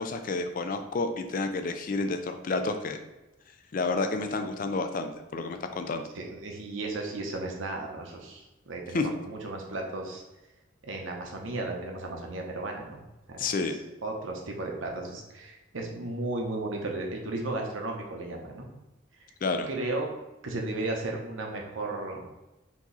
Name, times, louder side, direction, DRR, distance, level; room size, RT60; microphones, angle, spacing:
voice 1, 0.0-3.0 3.7-6.0 8.9-9.1 13.4-13.8 19.4-19.7, left 3 dB, 40° left, 7 dB, 0.4 m, -30 dB
voice 2, 6.1-10.2 10.8-13.4 13.6-13.7 14.0-18.7 19.7-20.2 20.4-22.3, right 2 dB, 75° right, 1 dB, 0.9 m, -35 dB
4.5 x 2.9 x 4.0 m, 1.0 s
head